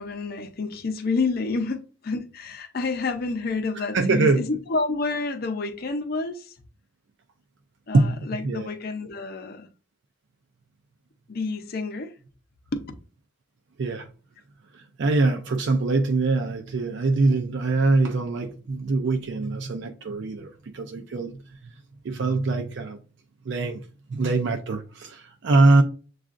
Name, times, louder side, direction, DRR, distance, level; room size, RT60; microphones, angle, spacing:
voice 1, 0.0-6.5 7.9-9.7 11.3-12.1 12.7-12.8, left 3 dB, 50° left, 0.6 m, -29 dB
voice 2, 3.7-4.5 7.9-8.7 13.8-14.1 14.7-21.7 22.0-23.0 23.5-25.8, right 3 dB, 60° right, 0.4 m, -23 dB
7.2 x 2.4 x 2.4 m
head